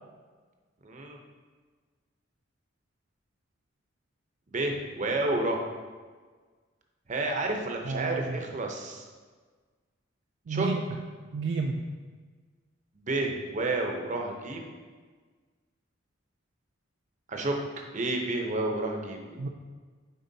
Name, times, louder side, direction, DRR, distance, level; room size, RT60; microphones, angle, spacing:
voice 1, 0.8-1.2 4.5-5.6 7.1-9.1 10.5-10.7 13.0-14.7 17.3-17.5 17.9-19.4, right 2 dB, 40° right, 2 dB, 0.7 m, -30 dB
voice 2, 7.8-8.4 10.5-10.8 11.3-11.9 19.4-19.5, right 4 dB, 55° right, 2 dB, 0.3 m, -30 dB
9.1 x 4.2 x 2.7 m, 1.5 s
head